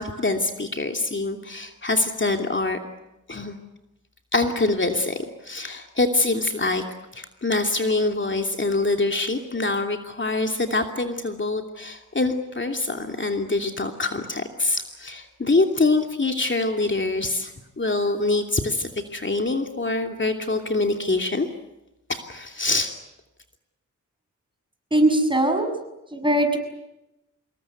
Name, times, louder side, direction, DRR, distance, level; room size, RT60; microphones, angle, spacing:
voice 1, 0.0-2.8 3.3-3.6 4.3-6.8 7.1-21.5 22.1-22.9, left 2 dB, 40° left, 4 dB, 2.8 m, -25 dB
voice 2, 24.9-25.7 26.1-26.6, right 1 dB, 15° right, 6 dB, 6.7 m, -20 dB
27.0 x 21.5 x 9.5 m, 0.93 s
cardioid pair, 60°, 31 cm